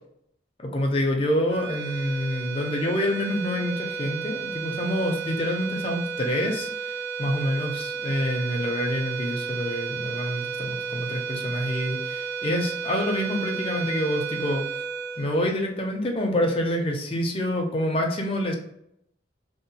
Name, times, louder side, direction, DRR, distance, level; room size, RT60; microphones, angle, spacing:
voice 1, 0.6-14.6 15.2-18.5, left 1 dB, 30° left, 2 dB, 0.4 m, -27 dB
sound 1, 1.5-16.1, right 6 dB, 70° right, 0.5 m, -33 dB
2.8 x 2.0 x 2.7 m, 0.73 s
head